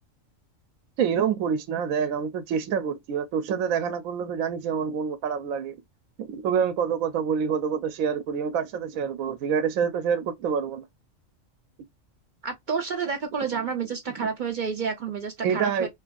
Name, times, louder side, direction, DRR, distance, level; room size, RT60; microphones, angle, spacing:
voice 1, 1.0-5.8 6.2-10.8 15.4-15.9, right 7 dB, 85° right, 1.0 m, -27 dB
voice 2, 12.4-15.9, right 6 dB, 60° right, 0.5 m, -29 dB
3.0 x 2.5 x 2.2 m
omnidirectional pair, 1.4 m